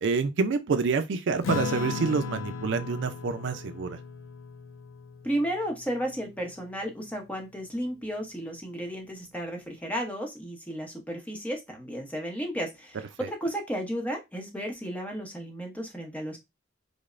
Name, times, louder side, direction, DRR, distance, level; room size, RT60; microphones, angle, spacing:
voice 1, 0.0-4.0, right 4 dB, 60° right, 0.4 m, -27 dB
Acoustic guitar / Strum, 1.4-6.3, left 5 dB, 80° left, 0.5 m, -36 dB
voice 2, 5.2-16.4, equal, 5° left, 0.7 m, -33 dB
5.0 x 2.0 x 2.4 m
head